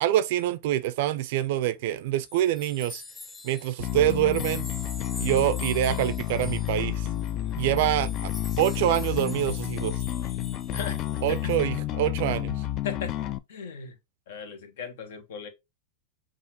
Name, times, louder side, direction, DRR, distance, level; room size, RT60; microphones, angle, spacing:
voice 1, 0.0-3.0 3.4-4.7 5.2-7.1 7.6-8.3 8.6-10.0 11.2-12.6, right 13 dB, 65° right, 0.3 m, -25 dB
sound 1, 2.2-11.7, left 3 dB, 20° left, 0.9 m, -44 dB
Bass guitar, 3.8-13.4, left 12 dB, 45° left, 0.3 m, -30 dB
voice 2, 10.7-11.0 11.3-11.5 12.8-14.0 14.3-15.5, left 6 dB, 70° left, 1.0 m, -37 dB
5.6 x 2.4 x 2.7 m
hypercardioid pair, 115°, 0 cm